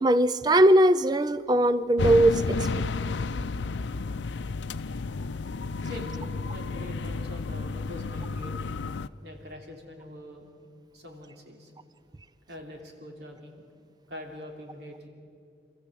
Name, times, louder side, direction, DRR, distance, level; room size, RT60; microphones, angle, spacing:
voice 1, 0.0-2.6, right 1 dB, 20° right, 15 dB, 0.5 m, -20 dB
sound 1, 2.0-9.1, left 4 dB, 85° left, 0.5 m, -32 dB
voice 2, 5.8-8.5 9.2-10.5 10.9-11.7 12.5-13.7 14.1-15.1, left 1 dB, 65° right, 2 dB, 3.1 m, -43 dB
27.5 x 14.5 x 7.6 m, 2.4 s
head